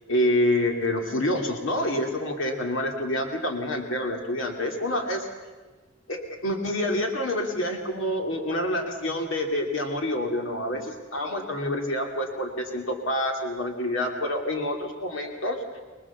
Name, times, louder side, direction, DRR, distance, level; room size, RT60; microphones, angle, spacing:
voice 1, 0.1-5.2 6.1-15.8, left 1 dB, 85° left, 3 dB, 2.4 m, -27 dB
25.0 x 20.0 x 7.1 m, 1.3 s
head